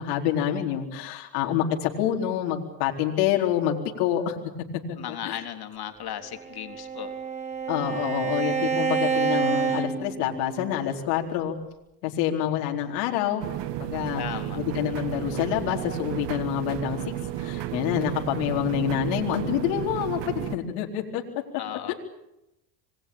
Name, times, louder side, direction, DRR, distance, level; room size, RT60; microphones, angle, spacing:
voice 1, 0.0-4.4 4.9-5.4 7.7-11.6 12.0-13.4 13.8-14.2 14.6-17.0 17.3-21.2 21.9-22.0, left 10 dB, 75° left, 1 dB, 4.3 m, -27 dB
voice 2, 5.0-7.1 14.1-14.6 21.6-21.9, left 10 dB, 45° left, 6 dB, 3.9 m, -36 dB
Bowed string instrument, 6.3-10.8, right 6 dB, 15° right, 5.4 m, -28 dB
sound 1, 13.4-20.6, right 13 dB, 55° right, 2.3 m, -33 dB
27.0 x 21.5 x 8.8 m, 0.88 s
supercardioid pair, 85°, 50 cm